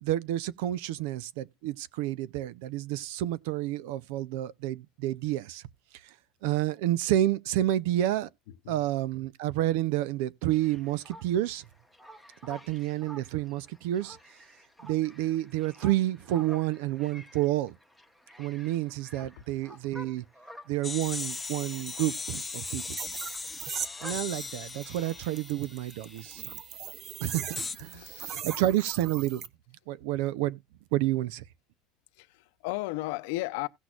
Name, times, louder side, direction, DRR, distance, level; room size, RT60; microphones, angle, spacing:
voice 1, 0.0-5.6 6.4-8.3 8.7-11.6 12.4-14.2 14.8-17.7 18.4-20.2 20.7-23.0 24.0-26.4 27.2-29.4 29.9-30.6 30.9-31.4, right 14 dB, 80° right, 0.6 m, -29 dB
sound 1, 10.5-25.4, equal, 5° right, 1.0 m, -52 dB
sound 2, 20.8-26.5 27.6-27.8, left 4 dB, 15° left, 0.4 m, -38 dB
sound 3, 21.0-29.5, right 8 dB, 45° right, 0.7 m, -41 dB
voice 2, 27.9-28.5 32.2-33.7, left 19 dB, 80° left, 0.6 m, -35 dB
16.5 x 6.1 x 2.4 m
cardioid pair, 135°, 0 cm